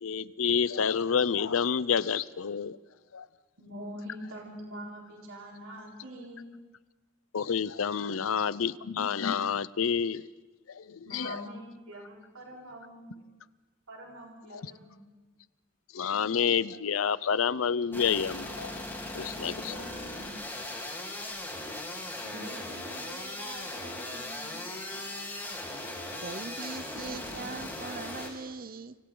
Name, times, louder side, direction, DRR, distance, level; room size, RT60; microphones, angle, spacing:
voice 1, 0.0-2.8 3.1-3.3 7.3-10.2 10.7-11.4 14.5-14.6 15.9-18.8 19.1-19.8, left 6 dB, 75° left, 0.6 m, -29 dB
voice 2, 3.6-6.5 11.0-13.2 13.9-15.1 19.6-20.3 22.2-24.6, right 1 dB, 75° right, 4.2 m, -45 dB
sound 1, 17.9-28.3, left 1 dB, 10° left, 3.5 m, -38 dB
voice 3, 26.1-29.0, right 4 dB, 45° right, 0.7 m, -40 dB
29.5 x 25.5 x 3.9 m
head